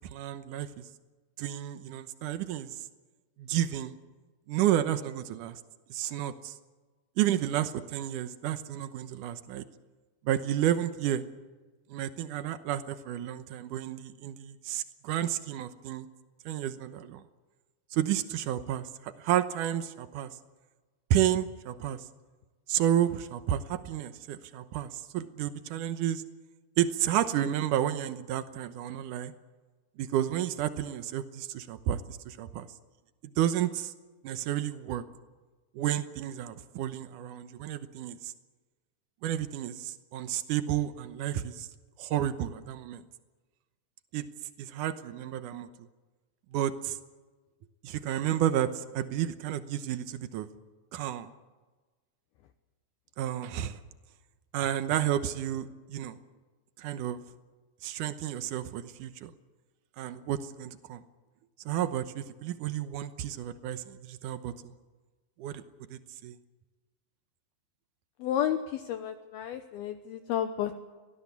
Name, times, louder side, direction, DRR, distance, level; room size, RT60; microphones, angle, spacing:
voice 1, 0.1-0.8 1.4-2.8 3.4-3.9 4.5-5.6 5.9-6.5 7.2-9.6 10.2-11.2 11.9-16.1 16.4-17.2 17.9-20.3 21.1-22.0 22.7-26.2 26.8-29.3 30.0-32.7 33.4-33.9 34.2-35.0 35.7-38.3 39.2-41.7 42.0-43.0 44.1-44.2 44.6-45.7 46.5-47.0 47.8-50.5 50.9-51.3 53.2-53.8 54.5-56.2 56.8-57.2 57.8-59.3 60.0-61.0 61.6-64.5 65.4-65.6 65.9-66.4, right 11 dB, 85° right, 11 dB, 1.8 m, -31 dB
voice 2, 68.2-70.8, left 10 dB, 70° left, 7 dB, 2.6 m, -31 dB
24.5 x 19.5 x 8.3 m, 1.3 s
omnidirectional pair, 5.1 m